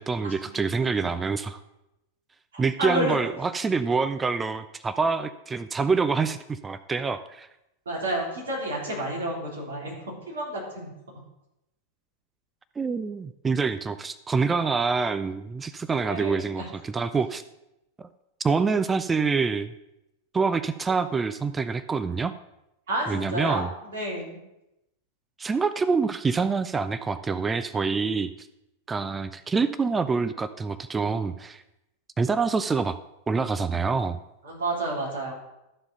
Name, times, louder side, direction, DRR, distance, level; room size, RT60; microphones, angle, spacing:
voice 1, 0.0-1.6 2.6-7.5 12.8-17.4 18.4-19.7 20.3-22.3 23.1-23.7 25.4-28.5 28.9-31.6 32.2-33.0 33.3-34.2, right 4 dB, 15° right, 13 dB, 0.4 m, -26 dB
voice 2, 2.5-3.2 7.8-10.0 10.3-10.9 16.0-16.7 22.9-24.4 34.4-35.3, right 1 dB, 60° right, -3 dB, 3.4 m, -30 dB
13.0 x 4.8 x 5.2 m, 0.88 s
figure-of-eight pair, 90°, 0 cm